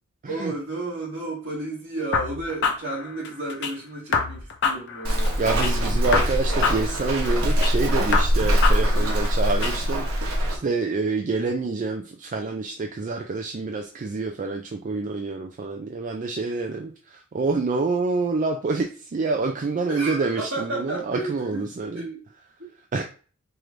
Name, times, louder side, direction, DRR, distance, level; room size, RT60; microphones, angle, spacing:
voice 1, 0.2-5.5 8.8-9.1 19.9-22.2 22.6-22.7, right 2 dB, 65° right, 2.1 m, -33 dB
sound 1, 2.1-3.7 4.1-5.7 6.1-7.7 8.1-9.7, left 5 dB, 55° left, 0.6 m, -27 dB
Walk footsteps, 5.0-10.5, equal, 85° right, 1.0 m, -22 dB
voice 2, 5.4-10.1 10.5-22.1 22.9-23.0, right 3 dB, 40° right, 0.4 m, -27 dB
4.7 x 2.5 x 3.1 m
head